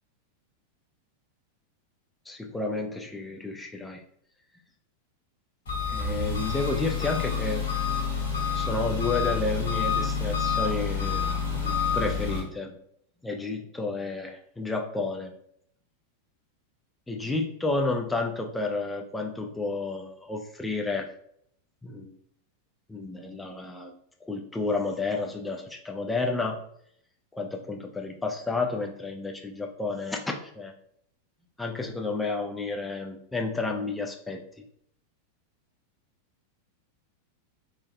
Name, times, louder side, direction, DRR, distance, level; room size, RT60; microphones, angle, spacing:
voice 1, 2.3-4.0 5.9-7.7 8.5-12.8 13.2-15.3 17.1-21.1 21.8-22.1 22.9-23.9 24.2-26.6 27.3-30.7 31.6-34.4, left 3 dB, 10° left, 2 dB, 0.4 m, -31 dB
Engine, 5.7-12.4, left 6 dB, 55° left, 1.0 m, -28 dB
3.5 x 2.1 x 2.6 m, 0.68 s
figure-of-eight pair, 90°, 0 cm